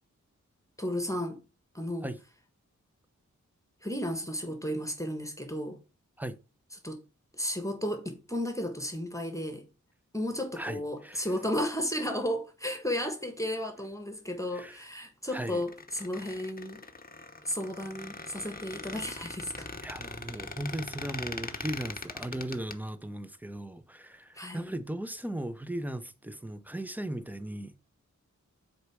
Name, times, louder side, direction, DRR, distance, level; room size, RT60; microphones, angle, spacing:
voice 1, 0.8-1.4 1.7-2.1 3.8-5.8 6.8-7.0 7.4-9.6 10.1-16.8 17.4-19.7 24.3-24.8, left 1 dB, 10° left, 1.4 m, -33 dB
voice 2, 10.5-11.3 14.5-14.9 15.3-15.6 19.8-27.8, right 1 dB, 5° right, 0.7 m, -37 dB
Squeak, 15.5-22.8, left 3 dB, 30° left, 0.9 m, -41 dB
6.5 x 4.3 x 4.8 m
wide cardioid pair, 60°, 31 cm